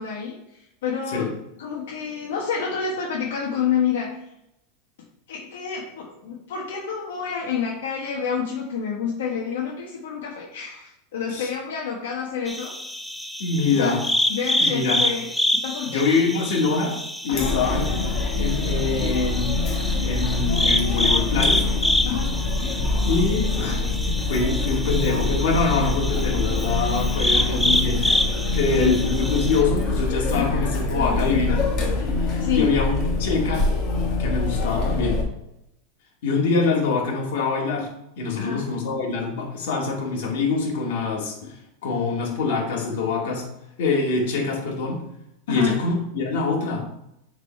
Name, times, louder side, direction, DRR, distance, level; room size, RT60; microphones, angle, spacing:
voice 1, 0.0-1.3 1.6-4.2 5.3-12.7 13.7-13.9 14.3-15.3 15.6-16.1 17.3-17.6 22.0-22.4 27.1-28.0 28.4-28.9 30.3-30.6 32.4-32.7 38.4-38.6 45.5-45.8, left 7 dB, 85° left, -3 dB, 1.4 m, -28 dB
sound 1, 12.5-29.6, left 1 dB, 5° left, 0.4 m, -27 dB
voice 2, 13.4-14.0 14.6-15.0 15.9-17.0 17.2-17.9 18.4-19.7 20.0-21.7 23.0-28.1 28.5-31.7 32.5-33.7 34.2-35.2 36.2-37.9 38.2-41.6 41.8-43.5 43.8-45.0 45.5-46.9, left 4 dB, 65° left, -1 dB, 2.3 m, -24 dB
Chatter, 17.3-35.2, left 3 dB, 35° left, 1.7 m, -24 dB
6.8 x 4.1 x 4.5 m, 0.84 s
supercardioid pair, 155°, 0 cm